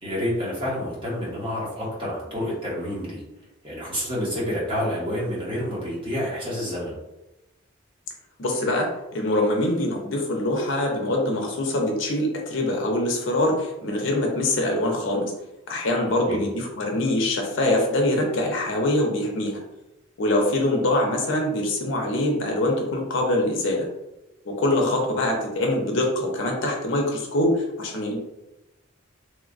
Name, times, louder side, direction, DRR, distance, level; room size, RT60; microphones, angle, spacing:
voice 1, 0.0-3.2 3.6-6.9 16.2-16.4, equal, 25° right, -7 dB, 0.9 m, -28 dB
voice 2, 8.4-15.3 15.7-19.6 20.2-23.9 24.4-28.2, left 1 dB, 65° left, 0 dB, 0.5 m, -24 dB
3.1 x 2.1 x 2.4 m, 0.96 s
head